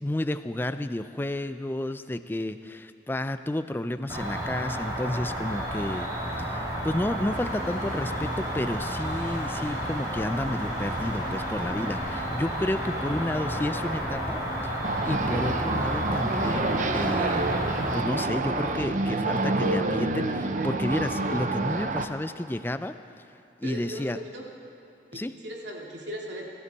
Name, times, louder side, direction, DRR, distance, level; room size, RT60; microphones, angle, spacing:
voice 1, 0.0-6.1 6.4-14.7 15.0-17.5 17.9-23.0 23.6-24.2 25.1-25.3, left 1 dB, 10° left, 11 dB, 0.4 m, -31 dB
Cricket, 4.1-18.0, equal, 20° right, 2.6 m, -31 dB
sound 1, 7.3-19.3, equal, 40° left, 1.8 m, -42 dB
sound 2, 14.8-22.1, right 2 dB, 40° right, 0.6 m, -27 dB
voice 2, 23.6-24.4 25.1-26.5, equal, 75° right, -2 dB, 2.4 m, -38 dB
19.5 x 14.0 x 4.2 m, 2.8 s
head